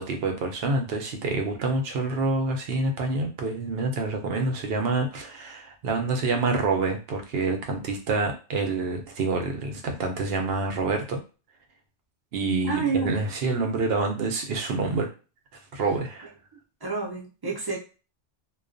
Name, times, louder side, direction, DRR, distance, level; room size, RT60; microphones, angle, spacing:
voice 1, 0.0-11.2 12.3-15.1 15.7-16.3, right 3 dB, 65° right, 4 dB, 0.7 m, -27 dB
voice 2, 12.6-13.1 16.8-17.8, right 4 dB, 30° right, -3 dB, 0.5 m, -28 dB
2.3 x 2.3 x 2.4 m, 0.34 s
omnidirectional pair, 1.2 m